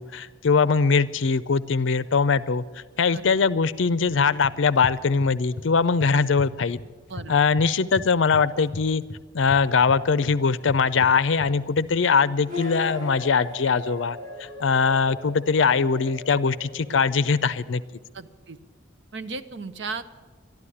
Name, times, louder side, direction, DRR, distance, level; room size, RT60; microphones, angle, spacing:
voice 1, 0.0-2.6 3.0-6.8 7.3-9.0 9.3-17.8, left 5 dB, 75° left, 16 dB, 0.5 m, -21 dB
sound 1, 4.1-5.7 6.0-7.3 7.6-11.9, left 2 dB, 55° left, 0.8 m, -38 dB
sound 2, 12.5-17.3, left 2 dB, 40° right, 2.5 m, -38 dB
voice 2, 18.1-18.6 19.1-20.1, right 4 dB, 60° right, 10 dB, 0.7 m, -36 dB
12.0 x 12.0 x 9.8 m, 1.4 s
head